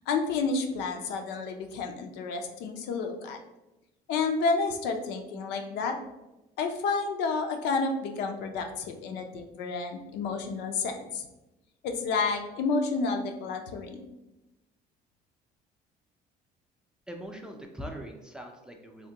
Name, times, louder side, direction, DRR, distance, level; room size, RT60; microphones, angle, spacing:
voice 1, 0.1-3.4 4.1-6.0 6.6-11.2 11.8-14.1, left 4 dB, 85° left, 4 dB, 0.5 m, -30 dB
voice 2, 17.1-19.1, equal, 5° right, 2 dB, 0.4 m, -41 dB
3.4 x 2.1 x 2.7 m, 0.98 s
cardioid pair, 110°, 17 cm